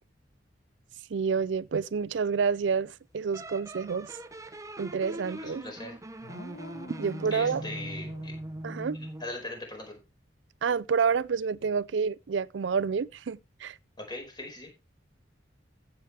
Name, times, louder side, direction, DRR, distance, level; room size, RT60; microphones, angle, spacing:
voice 1, 1.1-4.1 4.8-5.6 7.0-7.6 8.6-9.0 10.6-13.8, right 5 dB, 70° right, 0.4 m, -28 dB
sound 1, 3.3-9.4, right 1 dB, 20° right, 0.9 m, -41 dB
voice 2, 5.3-6.0 7.3-8.3 8.9-10.0 14.0-14.7, left 2 dB, 25° left, 4.7 m, -40 dB
sound 2, 6.2-9.3, left 1 dB, 60° left, 1.6 m, -46 dB
15.0 x 7.1 x 3.3 m
head